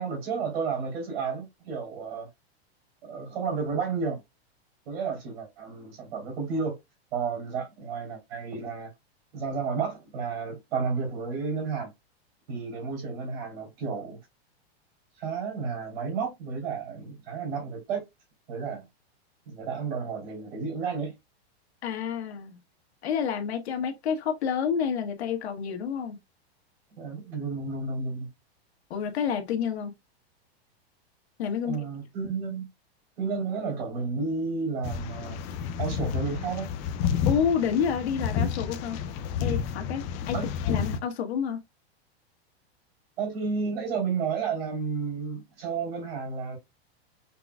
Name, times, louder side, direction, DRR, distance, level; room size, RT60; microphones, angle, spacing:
voice 1, 0.0-2.3 3.0-4.2 4.8-6.8 7.1-8.9 9.3-11.9 12.5-14.2 15.2-18.0 18.5-18.9 19.5-21.1 26.9-28.3 31.6-32.7 33.2-35.4 35.8-36.7 40.3-40.5 43.2-46.6, right 5 dB, 70° right, 3.1 m, -32 dB
voice 2, 21.8-22.6 23.0-26.2 28.9-29.9 31.4-31.8 37.2-39.0 39.4-40.4 40.6-41.6, left 7 dB, 80° left, 1.4 m, -29 dB
sound 1, 34.8-41.0, left 7 dB, 25° left, 0.4 m, -30 dB
5.8 x 3.6 x 2.2 m
supercardioid pair, 160°, 32 cm